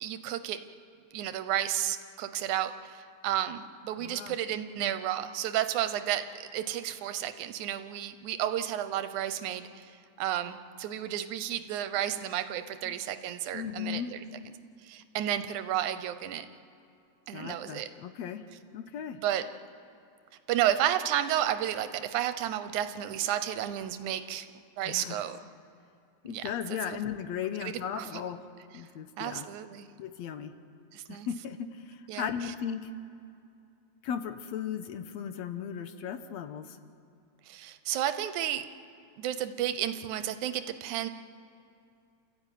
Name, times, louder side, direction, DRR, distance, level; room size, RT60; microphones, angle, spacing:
voice 1, 0.0-0.6 1.1-14.2 14.8-16.5 17.3-17.9 19.2-19.4 20.5-24.5 24.8-25.4 26.3-27.0 27.6-28.2 29.2-29.9 30.9-31.3 32.1-32.5 37.5-38.7 39.2-41.1, right 11 dB, 80° right, 11 dB, 2.3 m, -32 dB
voice 2, 4.0-4.4 12.9-13.0 13.5-14.1 17.3-18.4 18.7-19.2 24.8-25.2 26.2-28.4 28.7-29.5 30.0-30.5 31.1-32.9 34.0-36.8, left 8 dB, 70° left, 8 dB, 2.1 m, -36 dB
29.0 x 14.0 x 9.2 m, 2.5 s
omnidirectional pair, 3.4 m